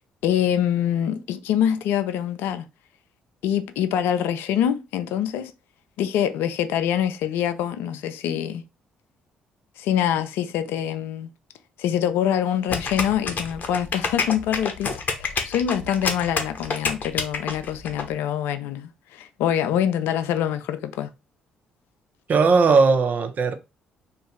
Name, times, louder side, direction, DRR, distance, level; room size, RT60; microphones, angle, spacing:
voice 1, 0.2-2.7 3.4-5.5 6.0-8.6 9.8-11.3 11.8-21.1, left 9 dB, 65° left, 0.3 m, -25 dB
sound 1, 12.7-18.0, left 4 dB, 45° left, 0.8 m, -27 dB
voice 2, 22.3-23.6, right 4 dB, 45° right, 0.6 m, -18 dB
2.6 x 2.3 x 3.8 m
hypercardioid pair, 45°, 4 cm